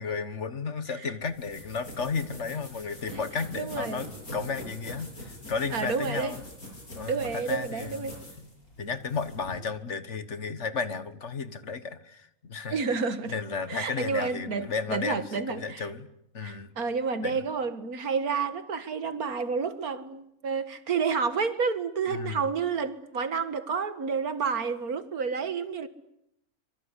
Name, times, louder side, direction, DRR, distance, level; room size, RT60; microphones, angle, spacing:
voice 1, 0.0-6.4 7.0-8.1 8.8-12.8 13.2-16.1 16.3-16.7 17.2-17.4 22.1-22.4, left 5 dB, 55° left, 1.7 m, -33 dB
sound 1, 1.2-9.5, left 1 dB, 90° left, 8.1 m, -43 dB
voice 2, 3.6-4.0 5.7-6.3 7.1-8.1 12.7-13.3 13.7-15.9 16.4-25.9, right 5 dB, 85° right, 2.2 m, -30 dB
25.5 x 23.5 x 9.9 m
omnidirectional pair, 1.5 m